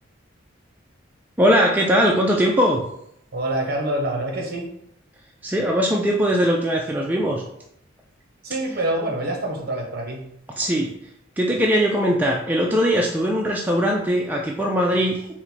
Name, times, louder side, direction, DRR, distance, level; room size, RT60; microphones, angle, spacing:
voice 1, 1.4-2.8 5.4-7.4 10.6-10.9 11.4-15.3, equal, 10° right, -1 dB, 0.3 m, -20 dB
voice 2, 3.3-4.7 8.4-10.3, right 1 dB, 50° right, 1 dB, 0.9 m, -26 dB
4.3 x 2.2 x 4.1 m, 0.75 s
head